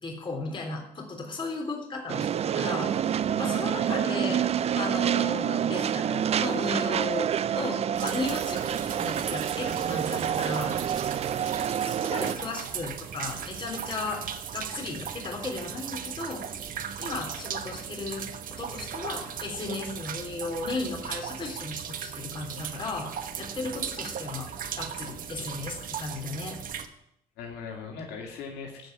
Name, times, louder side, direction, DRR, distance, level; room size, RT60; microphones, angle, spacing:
voice 1, 0.0-2.3 2.5-4.5 4.7-11.0 11.9-14.2 14.5-16.4 17.0-23.1 23.3-24.5 24.7-26.6, left 3 dB, 30° left, 0 dB, 3.6 m, -35 dB
sound 1, 2.1-12.4, right 9 dB, 40° right, 0.5 m, -27 dB
voice 2, 3.1-3.8 27.4-28.9, left 5 dB, 80° left, 1 dB, 2.5 m, -40 dB
sound 2, 8.0-26.9, right 8 dB, 55° right, 1.2 m, -37 dB
14.5 x 5.2 x 9.3 m, 0.78 s
cardioid pair, 110°, 17 cm